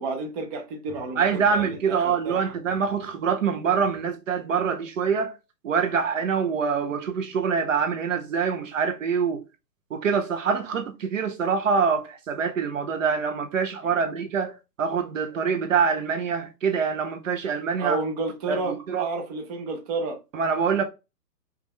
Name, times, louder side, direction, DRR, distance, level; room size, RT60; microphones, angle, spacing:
voice 1, 0.0-2.4 13.8-14.1 17.8-20.2, right 3 dB, 25° right, 0.8 m, -31 dB
voice 2, 1.2-5.4 5.6-9.4 9.9-18.0 18.5-19.1 20.3-20.8, right 6 dB, 50° right, 0.8 m, -25 dB
5.5 x 2.7 x 3.1 m
hypercardioid pair, 135°, 49 cm